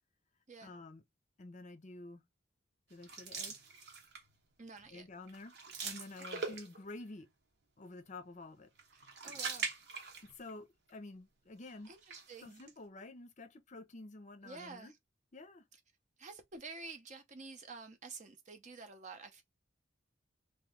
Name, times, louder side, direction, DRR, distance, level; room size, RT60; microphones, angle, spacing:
voice 1, 0.6-1.0 1.4-2.2 2.9-3.6 4.9-5.5 5.8-7.3 7.8-8.7 10.2-11.9 12.4-14.9 15.3-15.6, left 2 dB, 40° left, 0.6 m, -50 dB
sound 1, 3.0-4.4 4.8-5.0 5.3-7.0 8.8-10.6 10.9-11.0 11.8-12.7, right 5 dB, 60° right, 1.0 m, -42 dB
voice 2, 4.6-5.1 6.3-6.5 8.9-9.7 11.9-12.6 14.4-14.9 16.2-19.4, right 4 dB, 40° right, 0.7 m, -50 dB
3.0 x 2.7 x 3.5 m
head